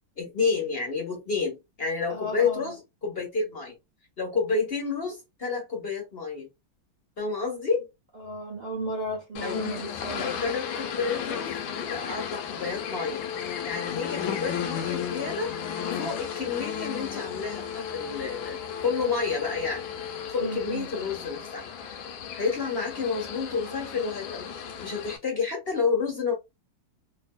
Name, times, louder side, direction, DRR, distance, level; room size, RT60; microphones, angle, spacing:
voice 1, 0.2-3.7 4.2-6.5 7.2-7.9 9.4-9.6 10.1-13.2 13.6-15.5 15.9-19.8 20.3-21.7 22.4-24.5 24.8-26.3, left 5 dB, 40° left, 0.9 m, -30 dB
voice 2, 2.1-2.6 8.2-10.3 20.4-20.9, right 1 dB, 85° right, 0.4 m, -34 dB
sound 1, 9.4-25.2, left 8 dB, 85° left, 1.4 m, -35 dB
sound 2, 12.7-20.7, left 8 dB, 70° left, 1.1 m, -39 dB
3.3 x 2.7 x 2.2 m
omnidirectional pair, 2.2 m